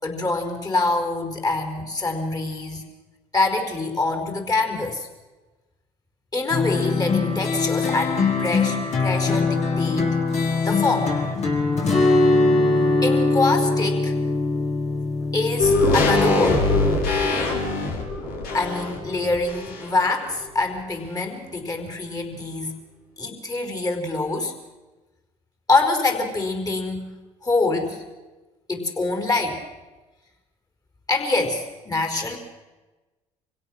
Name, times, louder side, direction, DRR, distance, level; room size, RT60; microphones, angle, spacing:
voice 1, 0.0-2.8 3.3-5.1 6.3-10.1 10.6-11.1 13.0-14.1 15.3-16.7 18.5-22.8 23.2-24.5 25.7-28.0 28.7-29.6 31.1-32.4, left 3 dB, 20° left, 5 dB, 4.7 m, -25 dB
sound 1, 6.5-17.0, left 3 dB, 45° left, 4.9 m, -22 dB
sound 2, 15.6-20.1 20.4-20.5, left 2 dB, 70° left, 4.6 m, -22 dB
25.0 x 17.0 x 6.5 m, 1.2 s
hypercardioid pair, 65°, 16 cm